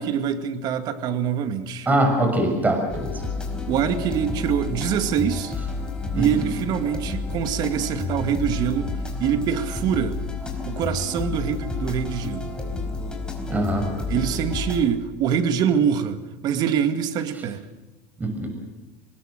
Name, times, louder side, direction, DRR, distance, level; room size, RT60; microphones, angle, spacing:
voice 1, 0.0-1.9 3.7-5.6 6.2-8.9 9.2-10.2 10.7-12.5 14.1-17.7, right 8 dB, 50° right, 8 dB, 2.1 m, -24 dB
voice 2, 1.9-3.2 6.1-6.2 13.5-13.9 18.2-18.5, right 1 dB, 20° right, 4 dB, 6.1 m, -22 dB
sound 1, 2.9-14.8, left 3 dB, 10° left, 4.3 m, -30 dB
25.5 x 20.0 x 6.6 m, 1.2 s
supercardioid pair, 110°, 9 cm